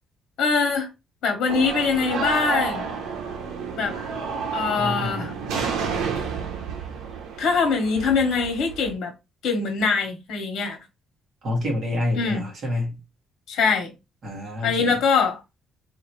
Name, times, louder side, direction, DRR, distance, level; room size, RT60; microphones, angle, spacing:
voice 1, 0.4-0.9 1.2-2.9 3.7-4.0 4.5-5.3 7.4-9.1 9.4-10.8 12.1-12.4 13.5-13.9 14.6-15.4, left 5 dB, 65° left, 1.2 m, -23 dB
sound 1, 1.5-8.9, right 5 dB, 90° right, 0.9 m, -30 dB
voice 2, 4.8-5.6 11.4-13.0 14.2-15.0, left 1 dB, 40° right, 1.7 m, -28 dB
3.8 x 2.8 x 3.2 m
cardioid pair, 155°, 0 cm